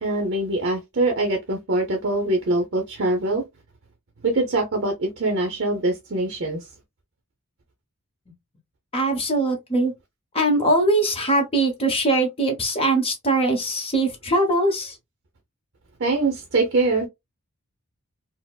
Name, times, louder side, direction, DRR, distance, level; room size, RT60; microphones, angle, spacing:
voice 1, 0.0-3.4 4.2-6.7 16.0-17.1, right 2 dB, 50° right, 0.6 m, -23 dB
voice 2, 8.9-9.9 10.3-15.0, right 2 dB, 25° left, 0.9 m, -21 dB
4.2 x 2.0 x 2.2 m
head